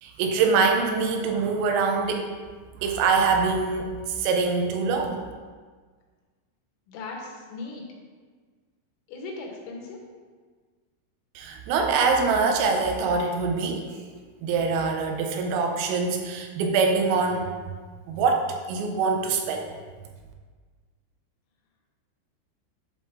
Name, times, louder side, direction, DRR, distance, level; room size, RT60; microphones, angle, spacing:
voice 1, 0.0-2.3 2.8-3.9 4.2-5.2 11.4-13.8 14.4-17.5 18.1-19.7, right 4 dB, 90° right, 3 dB, 3.6 m, -24 dB
voice 2, 6.9-7.8 9.1-10.0, left 3 dB, 80° left, 0 dB, 3.8 m, -38 dB
11.0 x 5.4 x 3.7 m, 1.5 s
omnidirectional pair, 5.8 m